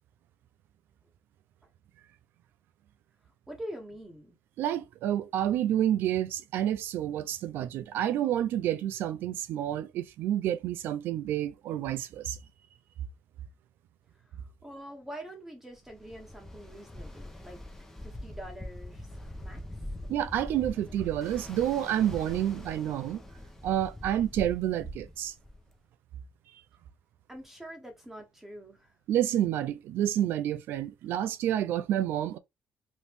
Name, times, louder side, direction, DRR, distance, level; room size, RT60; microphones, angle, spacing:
voice 1, 3.5-4.3 14.3-17.6 18.0-19.6 27.3-28.9, equal, 10° right, 1.1 m, -45 dB
voice 2, 4.6-12.4 20.1-23.2 23.6-25.3 29.1-32.4, right 11 dB, 80° right, 0.4 m, -29 dB
Ocean, 15.8-25.7, left 1 dB, 10° left, 0.8 m, -43 dB
3.0 x 2.5 x 3.4 m
cardioid pair, 95°, 4 cm